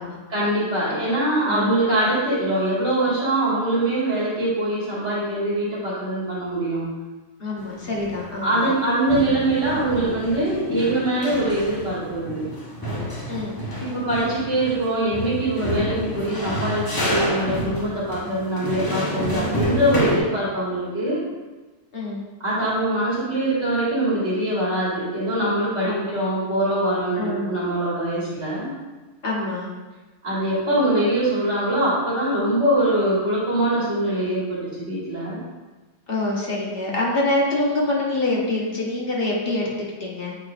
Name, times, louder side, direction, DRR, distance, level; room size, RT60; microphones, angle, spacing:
voice 1, 0.3-6.9 8.4-12.5 13.8-21.2 22.4-28.7 30.2-35.4, right 1 dB, 70° right, -8 dB, 2.2 m, -23 dB
voice 2, 7.4-8.7 13.3-13.6 18.2-18.4 21.9-22.2 25.8-26.2 27.2-27.5 29.2-29.7 36.1-39.7 40.0-40.3, left 2 dB, 55° left, -4 dB, 1.4 m, -25 dB
sound 1, 7.6-8.8 9.1-20.2, equal, 20° left, 1.0 m, -29 dB
8.2 x 4.5 x 2.5 m, 1.2 s
omnidirectional pair, 1.2 m